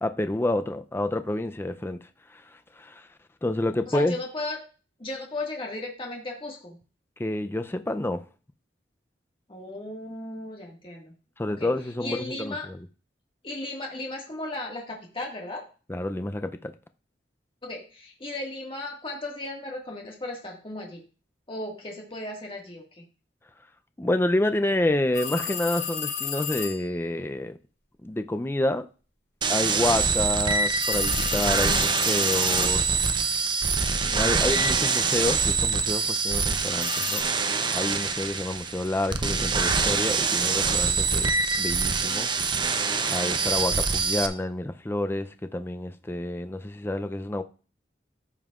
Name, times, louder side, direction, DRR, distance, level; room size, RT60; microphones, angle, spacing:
voice 1, 0.0-2.0 2.3-2.4 2.8-3.1 3.4-4.2 7.2-8.2 11.4-12.8 15.9-16.7 24.0-27.6 28.0-28.9 29.5-33.0 34.0-37.2 37.7-41.3 41.6-42.3 43.1-47.4, left 1 dB, 15° left, 0.4 m, -28 dB
voice 2, 3.9-4.6 5.0-6.8 9.5-11.1 11.5-11.7 12.0-12.7 13.4-15.7 17.6-21.0 21.5-23.0, left 2 dB, 30° left, 1.7 m, -35 dB
sound 1, 25.1-26.9 30.8-33.1 36.8-37.2, left 7 dB, 60° left, 3.8 m, -33 dB
sound 2, 29.4-44.3, right 5 dB, 25° right, 0.6 m, -25 dB
14.0 x 5.4 x 2.4 m
head